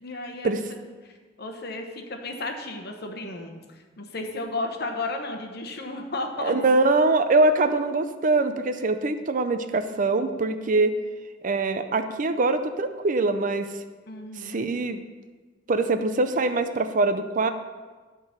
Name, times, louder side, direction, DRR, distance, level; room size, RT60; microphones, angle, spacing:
voice 1, 0.0-6.5 14.1-14.6, left 2 dB, 60° left, 4 dB, 1.0 m, -34 dB
voice 2, 6.4-10.9 11.4-13.7 14.4-15.0 15.7-17.5, right 3 dB, 45° right, 9 dB, 0.5 m, -23 dB
11.5 x 3.8 x 5.8 m, 1.4 s
head